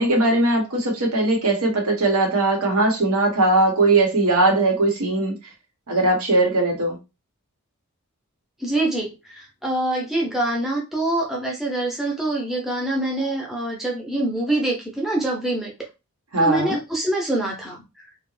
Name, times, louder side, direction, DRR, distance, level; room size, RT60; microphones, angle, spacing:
voice 1, 0.0-5.3 5.9-7.0 16.3-16.8, right 2 dB, 80° right, 1.0 m, -19 dB
voice 2, 8.6-15.7 16.4-18.1, right 1 dB, ahead, 0.5 m, -25 dB
2.4 x 2.1 x 3.1 m
head